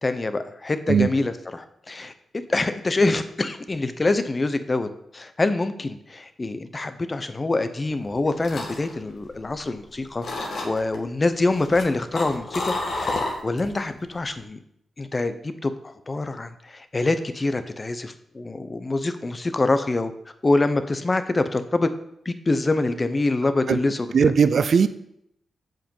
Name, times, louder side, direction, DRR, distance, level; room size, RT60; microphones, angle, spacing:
voice 1, 0.0-2.1 2.5-4.9 5.1-14.6 15.0-20.1 20.4-21.9 22.3-24.3, left 2 dB, 30° left, 10 dB, 0.7 m, -25 dB
sound 1, 8.0-9.9 10.2-11.0 11.5-13.8 14.1-14.4, left 2 dB, 65° left, 1.7 m, -30 dB
voice 2, 24.1-24.9, right 6 dB, 65° right, 12 dB, 0.4 m, -18 dB
7.5 x 5.2 x 5.4 m, 0.75 s
cardioid pair, 80°, 0 cm